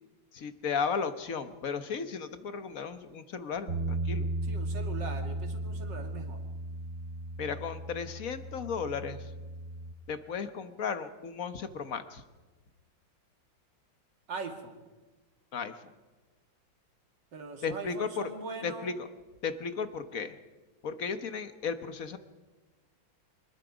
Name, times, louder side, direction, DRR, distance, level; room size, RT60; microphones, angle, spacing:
voice 1, 0.3-4.3 7.4-9.3 10.1-12.2 15.5-15.7 17.6-18.3 18.6-18.9 19.4-20.4 20.8-22.2, left 6 dB, 50° left, 9 dB, 1.4 m, -35 dB
Bass guitar, 3.7-9.9, right 1 dB, 45° right, 2.3 m, -36 dB
voice 2, 4.4-6.4 14.3-14.8 17.3-19.0, right 4 dB, 65° right, 4 dB, 2.9 m, -41 dB
25.0 x 20.5 x 5.1 m, 1.2 s
omnidirectional pair, 2.1 m